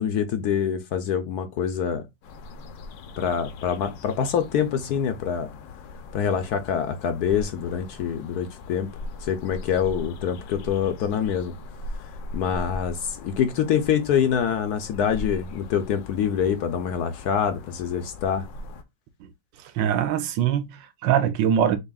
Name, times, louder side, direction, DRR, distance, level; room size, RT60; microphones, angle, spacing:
voice 1, 0.0-2.0 3.2-5.5 6.1-8.9 9.2-11.5 12.3-18.5, left 8 dB, 70° left, 1.0 m, -25 dB
sound 1, 2.2-18.8, left 2 dB, 85° left, 1.4 m, -40 dB
voice 2, 19.6-21.8, right 9 dB, 80° right, 1.3 m, -23 dB
6.6 x 2.8 x 2.3 m
omnidirectional pair, 2.0 m